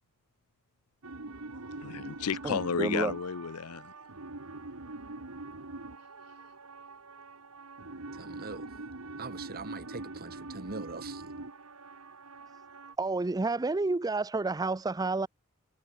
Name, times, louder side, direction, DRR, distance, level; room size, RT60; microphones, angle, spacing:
sound 1, 1.0-12.9, right 2 dB, 70° right, 1.9 m, -44 dB
voice 1, 1.8-3.9, left 6 dB, 80° left, 0.7 m, -33 dB
voice 2, 2.4-3.1 13.0-15.3, right 3 dB, 15° right, 0.4 m, -30 dB
voice 3, 8.2-8.7 9.2-11.2, right 3 dB, 45° right, 1.7 m, -42 dB
head